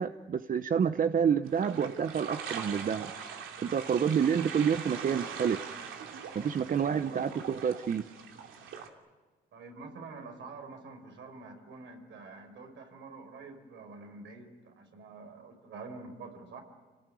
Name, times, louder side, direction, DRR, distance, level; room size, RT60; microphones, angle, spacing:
voice 1, 0.0-3.1 3.6-5.6 6.3-8.0, right 7 dB, 45° right, 10 dB, 0.8 m, -28 dB
sound 1, 1.4-8.9, right 7 dB, 85° right, 2.7 m, -42 dB
voice 2, 6.9-7.3 9.5-16.6, right 3 dB, 70° right, 4 dB, 5.5 m, -47 dB
27.5 x 19.0 x 9.2 m, 1.3 s
cardioid pair, 90°, 20 cm